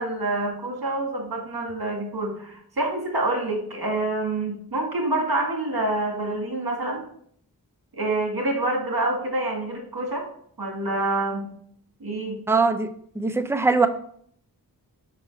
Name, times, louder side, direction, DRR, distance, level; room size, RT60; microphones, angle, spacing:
voice 1, 0.0-7.0 7.9-10.2 10.6-11.5 12.0-12.4, right 2 dB, 70° right, 1 dB, 1.9 m, -27 dB
voice 2, 12.5-12.9 13.2-13.9, right 4 dB, 5° right, 8 dB, 0.6 m, -21 dB
5.5 x 5.4 x 4.0 m, 0.63 s
wide cardioid pair, 55°, 38 cm